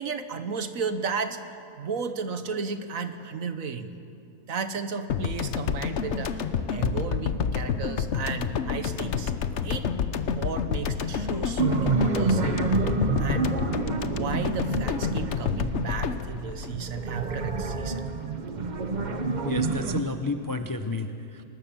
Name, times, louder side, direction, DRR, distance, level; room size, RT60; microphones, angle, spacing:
voice 1, 0.0-1.4 1.8-3.9 4.5-9.3 9.6-9.9 10.3-12.6 13.2-13.5 14.0-18.1, right 5 dB, 65° right, 9 dB, 1.4 m, -34 dB
sound 1, 5.1-17.6, left 6 dB, 55° left, 1.1 m, -29 dB
sound 2, 11.6-15.9 16.5-20.0, right 3 dB, 35° right, 0.9 m, -28 dB
voice 2, 19.4-21.4, left 3 dB, 25° left, 7 dB, 0.4 m, -31 dB
23.5 x 20.0 x 7.1 m, 2.6 s
omnidirectional pair, 1.6 m